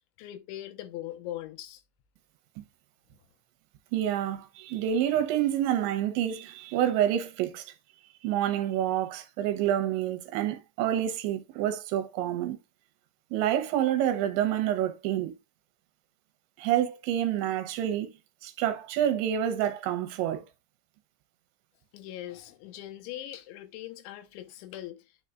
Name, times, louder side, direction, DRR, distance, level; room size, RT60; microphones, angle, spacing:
voice 1, 0.2-1.8 21.9-25.2, left 13 dB, 80° left, 3.2 m, -41 dB
voice 2, 3.9-7.7 8.2-12.6 13.3-15.3 16.6-18.1 18.4-20.5, right 11 dB, 80° right, 3.1 m, -28 dB
9.2 x 5.6 x 2.4 m
omnidirectional pair, 5.3 m